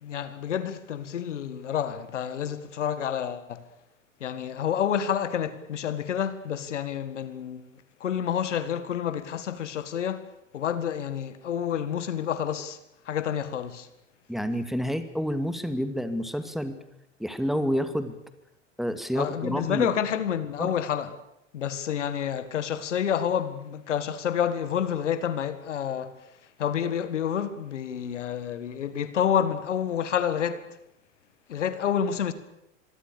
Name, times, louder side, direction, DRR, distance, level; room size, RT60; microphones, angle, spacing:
voice 1, 0.0-3.6 4.2-7.7 8.0-10.3 10.5-12.8 13.1-13.9 19.1-21.1 21.5-26.1 26.6-30.7 31.5-32.3, left 9 dB, 70° left, 1.8 m, -29 dB
voice 2, 14.3-16.8 17.2-18.2 18.8-19.9 20.6-20.7, equal, ahead, 2.3 m, -29 dB
26.0 x 23.5 x 6.9 m
figure-of-eight pair, 85°, 37 cm